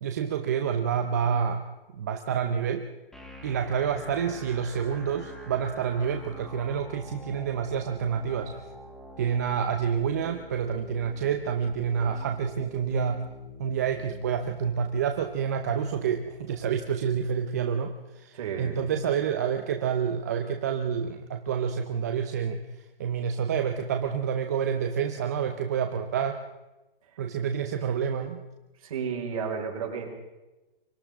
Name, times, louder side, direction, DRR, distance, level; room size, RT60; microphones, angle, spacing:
voice 1, 0.0-1.6 1.9-2.9 3.4-8.5 9.2-13.3 13.6-22.6 23.0-26.4 27.2-28.4, right 7 dB, 15° right, 6 dB, 0.7 m, -28 dB
sound 1, 3.1-17.1, equal, ahead, 1.6 m, -47 dB
voice 2, 18.3-18.8 28.8-30.1, right 6 dB, 35° right, 2 dB, 5.2 m, -32 dB
29.0 x 24.5 x 3.6 m, 1.0 s
hypercardioid pair, 165°, 29 cm